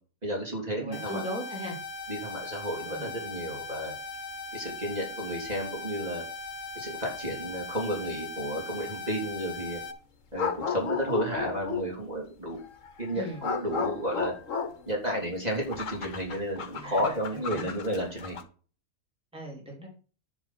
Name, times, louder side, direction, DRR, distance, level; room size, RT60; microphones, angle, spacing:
voice 1, 0.2-1.2 2.1-3.9 4.5-6.2 6.7-9.8 10.3-12.6 13.0-14.3 14.9-18.4, equal, 30° right, -2 dB, 3.1 m, -32 dB
voice 2, 0.8-1.8 2.9-3.1 13.1-13.4 16.7-17.1 17.5-17.7 19.3-19.9, equal, 5° right, -1 dB, 3.1 m, -38 dB
sound 1, 0.9-9.9, left 3 dB, 90° left, 1.6 m, -39 dB
sound 2, 5.5-5.6 6.5-6.6 10.4-11.9 12.6-18.4, left 6 dB, 65° left, 1.5 m, -34 dB
10.5 x 4.2 x 7.3 m, 0.38 s
omnidirectional pair, 1.5 m